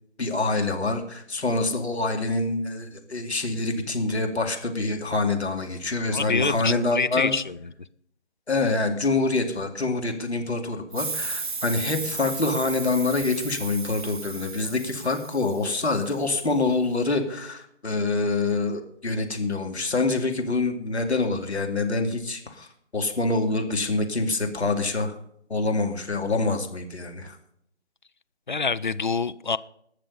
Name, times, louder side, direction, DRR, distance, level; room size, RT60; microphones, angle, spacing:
voice 1, 0.2-7.4 8.5-25.2 25.5-27.4, left 3 dB, 70° left, 2.7 m, -26 dB
voice 2, 6.1-7.6 28.5-29.6, left 4 dB, 45° left, 0.5 m, -26 dB
sound 1, 10.9-16.2, right 4 dB, 45° right, 0.8 m, -35 dB
19.5 x 6.8 x 5.5 m
figure-of-eight pair, 150°, 34 cm